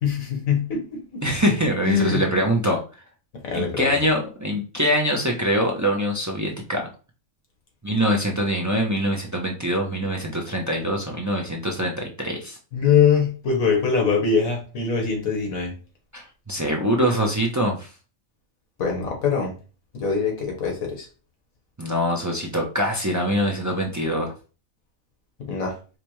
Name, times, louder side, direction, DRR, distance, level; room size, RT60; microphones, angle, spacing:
voice 1, 0.0-1.2 1.8-2.3 3.3-4.0 12.7-15.7 18.8-19.6 19.9-21.1 25.4-25.8, left 6 dB, 85° left, 1 dB, 1.6 m, -23 dB
voice 2, 1.2-2.8 3.5-6.9 7.8-12.6 16.1-17.9 21.8-24.3, equal, 30° right, 0 dB, 0.3 m, -24 dB
5.0 x 2.2 x 3.0 m, 0.35 s
omnidirectional pair, 1.4 m